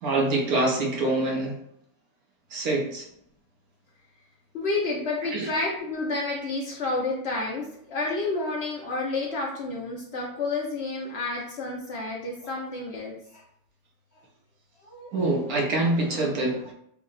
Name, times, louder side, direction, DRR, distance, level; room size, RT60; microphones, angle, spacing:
voice 1, 0.0-1.6 2.5-3.1 5.3-5.5 15.1-16.7, right 2 dB, 65° right, 0 dB, 1.0 m, -25 dB
voice 2, 4.5-13.4 14.8-15.1, left 3 dB, 85° left, -3 dB, 0.5 m, -30 dB
3.4 x 2.0 x 3.8 m, 0.71 s
omnidirectional pair, 2.0 m